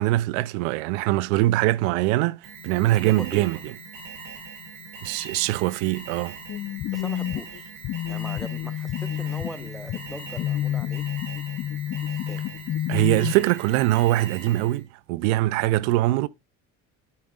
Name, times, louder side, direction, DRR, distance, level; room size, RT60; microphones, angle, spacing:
voice 1, 0.0-3.6 5.0-6.3 12.9-14.8 15.1-16.3, right 17 dB, 80° right, 0.5 m, -22 dB
Alarm, 2.4-14.8, right 4 dB, 60° right, 4.4 m, -41 dB
voice 2, 3.0-3.5 6.9-7.7 8.1-11.0 12.1-12.4, equal, ahead, 0.9 m, -40 dB
sound 1, 6.5-13.3, left 11 dB, 40° left, 0.5 m, -29 dB
9.5 x 8.5 x 2.4 m
hypercardioid pair, 75°, 38 cm